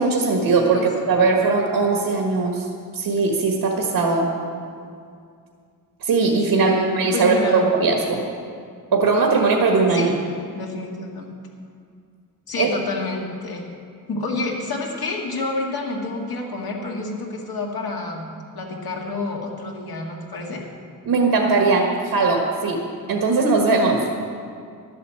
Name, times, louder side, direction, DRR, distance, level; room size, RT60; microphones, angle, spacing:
voice 1, 0.0-2.6 2.9-4.3 6.0-8.2 8.9-10.1 12.6-12.7 21.0-22.8 23.1-24.0, right 4 dB, 90° right, 0 dB, 1.5 m, -19 dB
voice 2, 6.5-7.6 9.9-10.2 10.5-11.3 12.5-13.6 14.1-18.3 18.5-20.6, left 3 dB, 80° left, -1 dB, 2.0 m, -29 dB
12.0 x 8.0 x 7.7 m, 2.2 s
wide cardioid pair, 175°, 36 cm